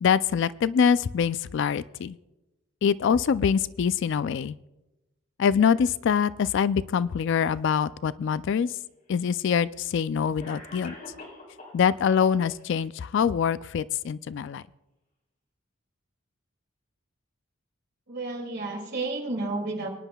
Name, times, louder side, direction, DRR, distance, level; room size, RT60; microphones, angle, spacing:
voice 1, 0.0-2.2 2.8-4.6 5.4-8.8 9.1-10.9 11.7-14.6, left 7 dB, 60° left, 16 dB, 0.3 m, -24 dB
Cough, 8.7-8.8 9.8-9.9 10.4-11.8 12.2-12.8, left 2 dB, 45° left, 4.5 m, -44 dB
voice 2, 18.1-19.9, right 2 dB, 55° right, 1 dB, 2.5 m, -31 dB
24.0 x 10.0 x 2.3 m, 0.98 s
head